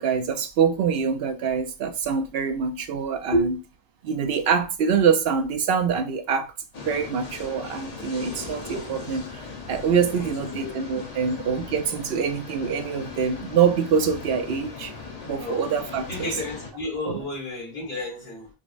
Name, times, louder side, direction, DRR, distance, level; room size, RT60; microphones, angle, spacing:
voice 1, 0.0-3.6 4.0-6.5 6.8-9.2 9.7-14.9 15.2-16.3 17.0-17.2, right 6 dB, 70° right, 0.8 m, -25 dB
sound 1, 6.7-16.7, left 4 dB, 45° left, 0.8 m, -39 dB
voice 2, 10.1-10.7 11.2-11.3 11.9-12.0 15.4-15.7 16.1-18.5, equal, 75° left, 2.2 m, -30 dB
5.0 x 2.0 x 2.5 m
omnidirectional pair, 1.1 m